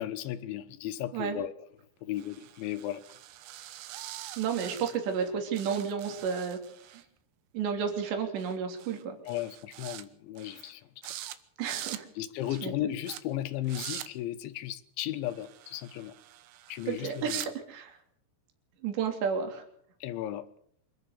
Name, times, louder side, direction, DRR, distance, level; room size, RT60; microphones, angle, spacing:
voice 1, 0.0-1.5 2.0-3.0 9.3-10.9 12.2-16.1 16.7-17.5 20.0-20.5, left 13 dB, 75° left, 11 dB, 3.3 m, -35 dB
sound 1, 2.2-5.3 5.5-7.0 8.4-8.5 8.8-9.0 9.3-10.0 10.4-10.7 11.0-11.4 11.6-12.0 12.4-12.7 13.0-13.2 13.6-14.1 15.3-17.5, right 13 dB, 80° right, 3.6 m, -43 dB
voice 2, 4.4-6.6 6.9-7.0 7.5-9.2 11.6-12.0 12.6-12.7 16.9-18.0 18.8-19.6, right 6 dB, 60° right, 4 dB, 5.1 m, -32 dB
26.5 x 11.5 x 8.5 m, 0.67 s
omnidirectional pair, 5.9 m